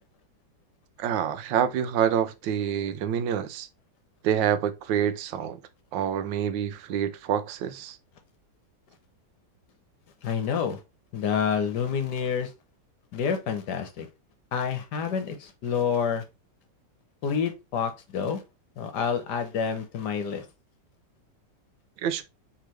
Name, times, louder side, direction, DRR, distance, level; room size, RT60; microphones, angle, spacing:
voice 1, 1.0-3.7 4.2-5.6 5.9-8.0 22.0-22.2, right 9 dB, 85° right, 1.3 m, -27 dB
voice 2, 10.2-10.8 11.1-12.5 13.1-14.1 14.5-16.2 17.2-18.4 18.8-20.4, left 7 dB, 70° left, 1.5 m, -28 dB
4.8 x 3.5 x 3.1 m
omnidirectional pair, 1.9 m